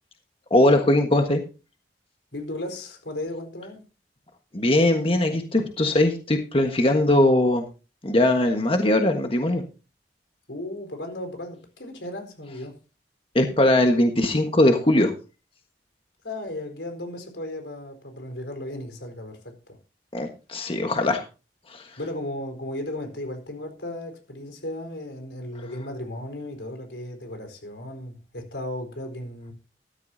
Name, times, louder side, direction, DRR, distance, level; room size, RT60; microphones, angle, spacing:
voice 1, 0.5-1.4 4.5-7.6 8.0-9.6 13.3-15.1 20.1-21.2 21.7-21.8, left 1 dB, 30° left, 1.5 m, -20 dB
voice 2, 2.3-3.8 10.5-12.8 16.2-19.8 22.0-29.5, left 1 dB, 90° left, 4.4 m, -35 dB
14.0 x 13.5 x 2.8 m
head